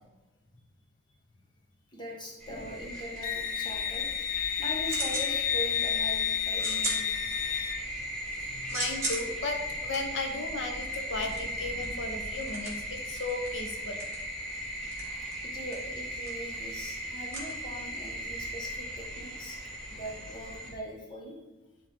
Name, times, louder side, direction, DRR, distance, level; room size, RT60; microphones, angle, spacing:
voice 1, 1.9-4.1 4.6-7.2 15.1-19.6 19.9-21.4, equal, 25° left, -1 dB, 1.4 m, -41 dB
sound 1, 2.4-20.7, equal, ahead, 1.8 m, -38 dB
Wind instrument woodwind instrument, 3.2-7.8, left 10 dB, 40° left, 0.3 m, -31 dB
sound 2, 4.8-5.3 5.7-6.1 6.5-7.7 8.1-18.2, right 2 dB, 15° right, 1.6 m, -39 dB
voice 2, 8.4-14.0, left 3 dB, 85° left, 4 dB, 0.7 m, -35 dB
10.5 x 3.5 x 3.6 m, 1.1 s
head